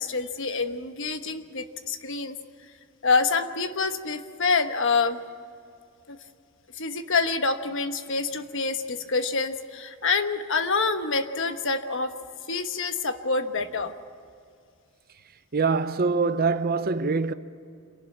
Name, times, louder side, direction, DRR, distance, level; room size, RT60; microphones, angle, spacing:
voice 1, 0.0-2.3 3.0-5.2 6.1-6.2 6.8-12.1 12.5-13.9, left 4 dB, 60° left, 1.2 m, -26 dB
voice 2, 15.5-17.3, right 4 dB, 45° right, 0.7 m, -24 dB
27.0 x 11.5 x 8.5 m
head